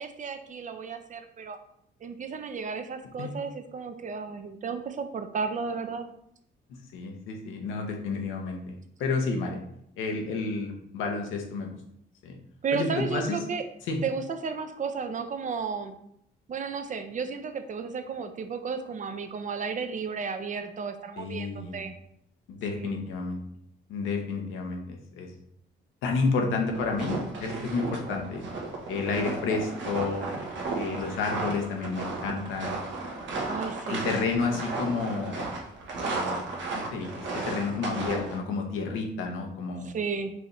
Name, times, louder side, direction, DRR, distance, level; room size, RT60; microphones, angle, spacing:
voice 1, 0.0-1.6 2.0-6.0 12.6-13.6 14.0-16.0 16.5-21.9 22.7-23.0 33.5-34.1 39.8-40.3, right 5 dB, 40° right, 8 dB, 0.5 m, -33 dB
voice 2, 6.9-8.7 9.0-9.6 10.0-11.8 12.2-12.3 12.7-13.4 13.9-14.0 21.2-21.8 22.5-23.4 23.9-25.3 26.0-28.4 28.9-30.3 30.7-32.8 33.9-35.4 36.0-36.4 36.7-39.9, left 4 dB, 90° left, 2 dB, 0.8 m, -30 dB
sound 1, 26.6-38.4, right 3 dB, 70° right, 1.0 m, -34 dB
4.7 x 2.6 x 3.1 m, 0.73 s
cardioid pair, 90°, 20 cm